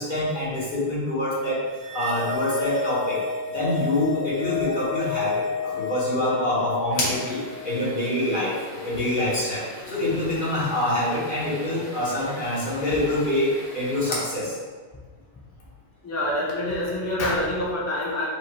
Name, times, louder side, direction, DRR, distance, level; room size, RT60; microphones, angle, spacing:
voice 1, 0.0-1.6 1.9-3.2 3.5-7.4 7.6-13.5 13.7-14.5, left 1 dB, 50° left, -8 dB, 1.4 m, -26 dB
sound 1, 1.8-8.3, left 6 dB, 70° right, 0.8 m, -31 dB
sound 2, 6.9-14.3, left 2 dB, 70° left, 1.1 m, -36 dB
voice 2, 16.0-18.3, left 1 dB, 20° left, -5 dB, 0.4 m, -26 dB
4.7 x 2.5 x 3.1 m, 1.5 s
omnidirectional pair, 1.1 m